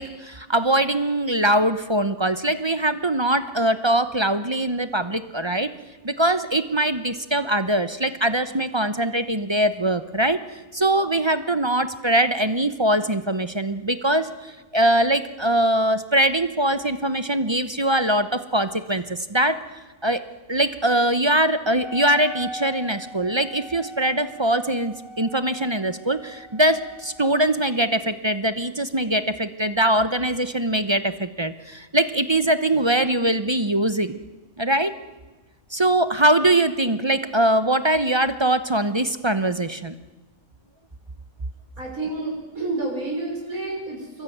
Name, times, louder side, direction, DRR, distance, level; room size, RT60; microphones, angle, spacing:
voice 1, 0.0-5.7 6.0-19.6 20.0-34.2 34.6-34.9 35.7-39.9, right 1 dB, 25° right, 11 dB, 0.8 m, -22 dB
Wind instrument woodwind instrument, 21.7-27.5, right 1 dB, 65° left, 4.6 m, -40 dB
voice 2, 41.8-44.2, right 2 dB, 80° right, -2 dB, 6.3 m, -29 dB
26.5 x 22.0 x 9.3 m, 1.2 s
omnidirectional pair, 1.5 m